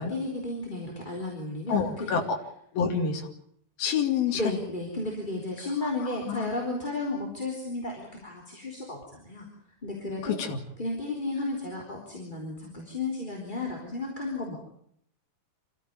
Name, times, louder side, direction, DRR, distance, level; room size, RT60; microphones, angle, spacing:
voice 1, 0.0-2.1 4.3-9.5 9.8-10.4 10.8-14.6, left 2 dB, 15° left, -1 dB, 3.5 m, -33 dB
voice 2, 1.7-2.4 2.7-3.3 3.8-4.4 5.8-6.5 10.2-10.6, left 6 dB, 85° left, 3 dB, 4.3 m, -28 dB
26.5 x 15.5 x 9.4 m, 0.71 s
omnidirectional pair, 4.1 m